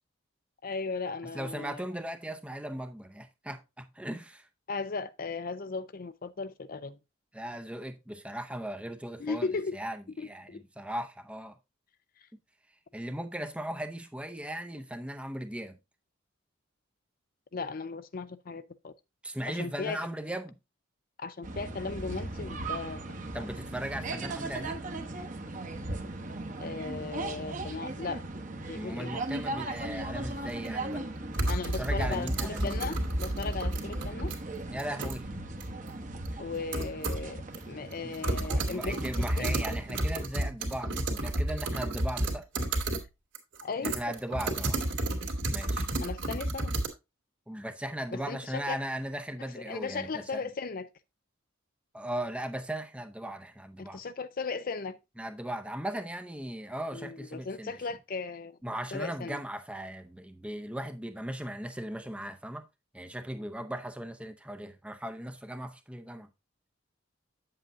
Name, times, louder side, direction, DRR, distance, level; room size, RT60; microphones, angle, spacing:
voice 1, 0.6-1.9 4.7-7.0 9.2-9.8 10.2-10.6 17.5-18.9 19.5-20.0 21.2-23.2 26.6-28.2 28.7-29.1 31.5-34.3 36.4-39.5 43.6-44.0 46.0-46.7 48.1-48.8 49.4-50.9 53.8-55.0 56.9-58.6 58.9-59.4, left 4 dB, 45° left, 0.5 m, -37 dB
voice 2, 1.3-4.5 7.3-9.5 9.7-11.6 12.9-15.8 19.2-20.6 23.3-24.8 28.7-31.0 31.8-32.9 34.7-35.3 38.0-38.1 38.6-42.4 43.8-44.9 45.5-45.9 47.5-50.5 51.9-54.0 55.2-57.7 58.6-62.7 62.9-66.3, right 1 dB, 5° right, 0.6 m, -38 dB
sound 1, 21.4-40.2, right 2 dB, 40° right, 1.0 m, -38 dB
sound 2, 30.5-30.6 31.3-34.4 34.8-35.2 35.6-35.7 36.3-36.4 36.7-37.3 37.5-37.6 37.9-43.1 43.4-46.9, right 1 dB, 60° right, 2.1 m, -31 dB
8.5 x 7.7 x 2.6 m
head